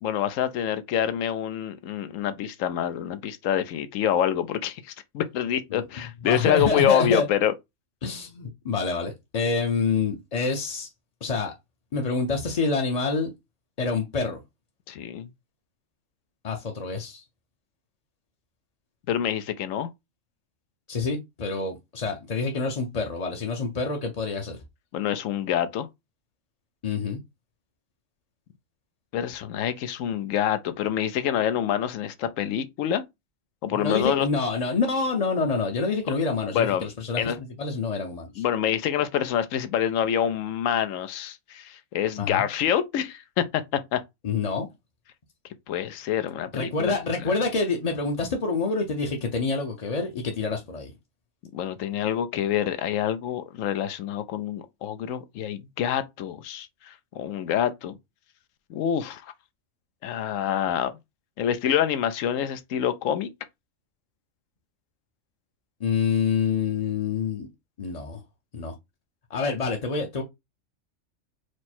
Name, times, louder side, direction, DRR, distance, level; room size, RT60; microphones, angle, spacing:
voice 1, 0.0-7.5 14.9-15.3 19.1-19.9 24.9-25.9 29.1-33.0 33.6-34.3 36.5-36.9 37.2-37.4 38.4-44.0 45.7-46.9 51.5-58.0 58.7-59.3 60.0-60.9 61.4-63.3, left 10 dB, 85° left, 1.0 m, -26 dB
voice 2, 6.2-7.3 8.0-10.9 11.2-11.5 11.9-13.3 13.8-14.4 16.4-17.2 20.9-24.6 26.8-27.2 33.7-38.4 42.2-42.4 44.2-44.7 46.5-50.9 65.8-67.5 67.8-68.2 68.5-68.7 69.3-70.2, left 4 dB, 40° left, 0.6 m, -27 dB
4.7 x 2.0 x 4.3 m
omnidirectional pair, 1.3 m